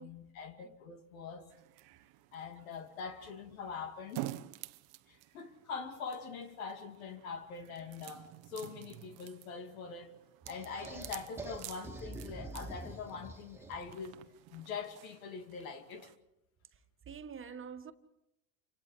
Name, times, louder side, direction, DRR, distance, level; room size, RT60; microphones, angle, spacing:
voice 1, 0.0-1.5 2.3-4.4 5.1-10.2 10.5-14.2 14.5-16.1, left 5 dB, 85° left, 2.5 m, -43 dB
sound 1, 1.5-16.2, right 17 dB, 65° right, 1.0 m, -50 dB
sound 2, 10.5-14.0, right 2 dB, 5° right, 2.1 m, -46 dB
voice 2, 17.0-17.9, right 6 dB, 30° right, 1.7 m, -47 dB
29.0 x 26.0 x 4.9 m
supercardioid pair, 95°, 41 cm